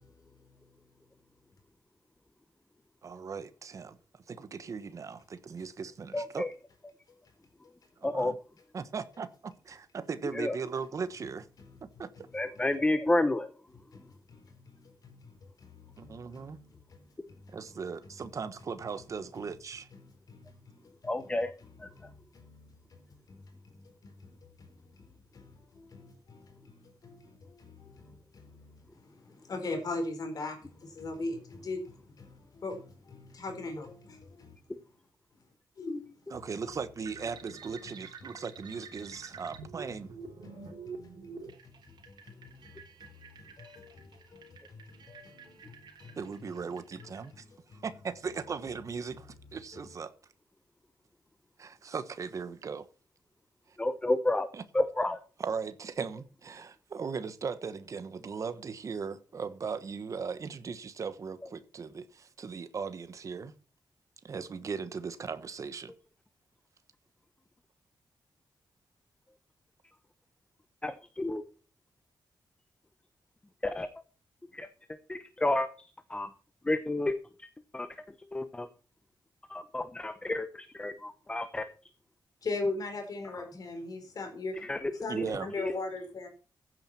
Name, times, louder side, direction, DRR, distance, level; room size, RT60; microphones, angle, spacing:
voice 1, 3.0-4.0 4.3-6.5 8.0-8.3 8.7-11.5 12.0-12.3 16.0-16.6 17.5-19.9 36.3-40.2 46.2-47.4 47.7-50.1 51.6-52.9 53.7-53.8 54.5-54.6 55.4-63.5 64.2-65.9 85.1-85.5, right 5 dB, 40° right, 1.2 m, -38 dB
voice 2, 6.1-6.5 8.0-8.3 10.3-10.6 12.3-13.5 21.0-21.5 21.8-21.9 53.8-54.5 54.7-55.2 70.8-71.4 73.6-73.9 74.5-74.7 75.1-76.3 76.6-77.1 77.4-77.5 77.7-77.9 78.3-78.7 79.5-81.7 84.6-85.2 85.6-85.7, left 2 dB, 15° left, 0.9 m, -30 dB
voice 3, 13.9-14.4 14.8-17.0 17.3-17.4 20.3-20.5 20.8-20.9 22.0-23.0 23.3-23.4 23.7-25.1 25.3-34.6 35.8-36.1 40.4-41.5 41.8-43.1 43.4-46.2 47.5-47.8 82.4-84.8 85.0-86.3, left 3 dB, 50° left, 4.4 m, -41 dB
sound 1, 37.1-47.3, right 5 dB, 65° right, 3.5 m, -48 dB
15.5 x 9.3 x 4.3 m
wide cardioid pair, 170°, 8 cm